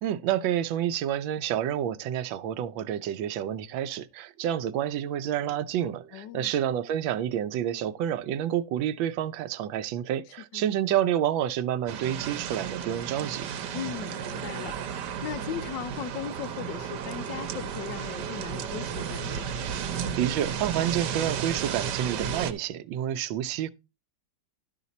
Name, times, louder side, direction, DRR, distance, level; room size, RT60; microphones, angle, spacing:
voice 1, 0.0-13.5 20.2-23.7, right 10 dB, 90° right, 1.4 m, -29 dB
voice 2, 6.1-6.5 10.5-10.7 13.7-19.5, left 10 dB, 75° left, 1.3 m, -38 dB
sound 1, 11.9-22.5, right 7 dB, 70° right, 1.4 m, -33 dB
11.5 x 5.6 x 4.1 m
omnidirectional pair, 2.0 m